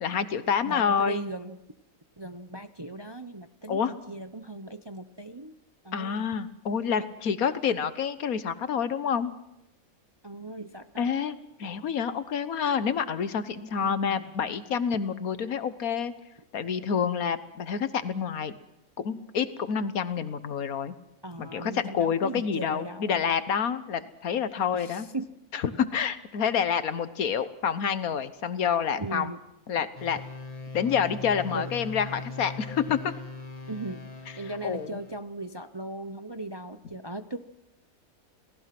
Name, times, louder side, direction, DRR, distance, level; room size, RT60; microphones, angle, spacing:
voice 1, 0.0-1.2 3.7-3.9 5.9-9.3 11.0-16.1 16.5-18.6 19.0-20.9 21.4-25.1 25.5-29.3 29.7-30.2 30.7-33.1 34.6-35.0, left 7 dB, 75° left, 13 dB, 1.5 m, -28 dB
voice 2, 0.6-1.6 2.2-5.5 5.8-6.2 10.2-11.3 13.8-14.2 21.2-23.2 24.7-25.3 29.0-29.4 31.5-31.7 33.7-34.1 34.4-37.4, right 2 dB, 25° right, 9 dB, 0.7 m, -38 dB
sound 1, 29.9-35.2, left 3 dB, 25° left, 1.8 m, -40 dB
29.0 x 18.5 x 6.0 m, 0.86 s
omnidirectional pair, 1.5 m